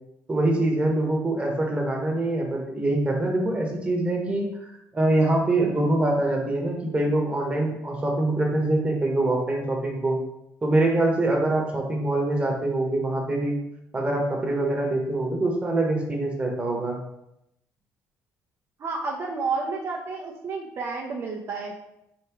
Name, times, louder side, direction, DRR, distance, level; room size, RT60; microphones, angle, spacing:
voice 1, 0.3-10.2 10.6-13.5 13.9-17.0, right 2 dB, 20° right, 0 dB, 1.1 m, -24 dB
voice 2, 18.8-21.7, right 4 dB, 45° right, -2 dB, 0.6 m, -30 dB
4.5 x 3.5 x 3.1 m, 0.82 s
cardioid pair, 115°, 6 cm